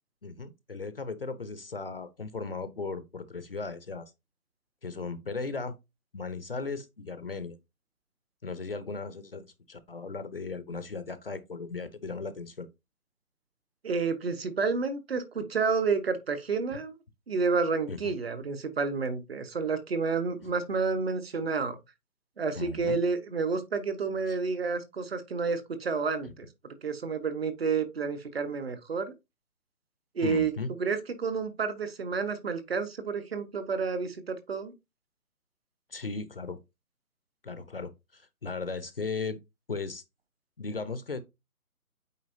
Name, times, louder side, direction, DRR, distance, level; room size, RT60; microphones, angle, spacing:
voice 1, 0.2-4.1 4.8-5.7 6.1-7.6 8.4-12.7 16.7-16.8 17.9-18.1 22.5-23.0 24.3-24.4 30.2-30.7 35.9-36.6 37.4-39.4 39.7-40.0 40.6-41.2, left 4 dB, 40° left, 0.6 m, -37 dB
voice 2, 13.8-16.9 17.3-21.8 22.4-26.5 26.8-29.1 30.1-30.5 30.8-34.7, right 4 dB, 40° right, 1.1 m, -30 dB
8.3 x 4.3 x 2.6 m
figure-of-eight pair, 160°, 45 cm